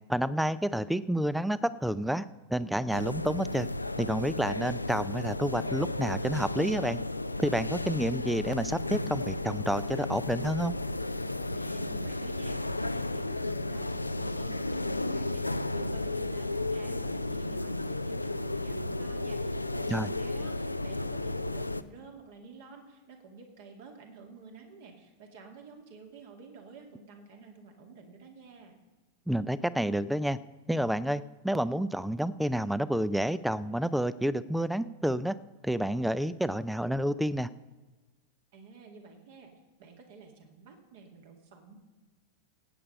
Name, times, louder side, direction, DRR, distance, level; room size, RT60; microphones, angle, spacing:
voice 1, 0.1-2.2 2.5-3.7 4.0-7.0 7.4-10.7 19.9-20.1 29.3-30.4 30.7-35.4 35.6-37.5, equal, ahead, 17 dB, 0.4 m, -29 dB
Airport Norway RF, 2.9-21.8, left 2 dB, 85° left, 0.4 m, -33 dB
voice 2, 11.5-28.8 38.5-39.5 39.8-41.8, right 4 dB, 55° right, 2 dB, 2.3 m, -51 dB
17.5 x 8.7 x 5.4 m, 1.2 s
figure-of-eight pair, 90°, 0 cm